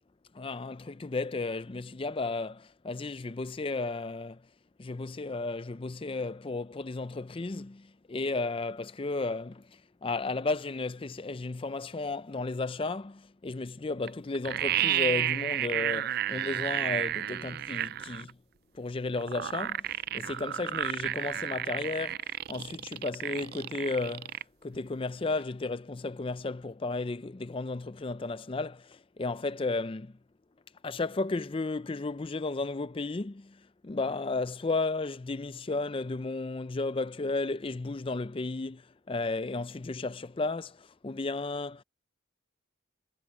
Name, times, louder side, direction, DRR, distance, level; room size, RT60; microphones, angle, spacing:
voice 1, 0.3-4.5 4.8-18.4 18.7-30.2 30.8-41.8, left 3 dB, 25° left, 0.5 m, -34 dB
sound 1, 14.1-14.2 14.3-18.3 19.2-24.4 24.7-24.8, right 12 dB, 50° right, 0.4 m, -31 dB
head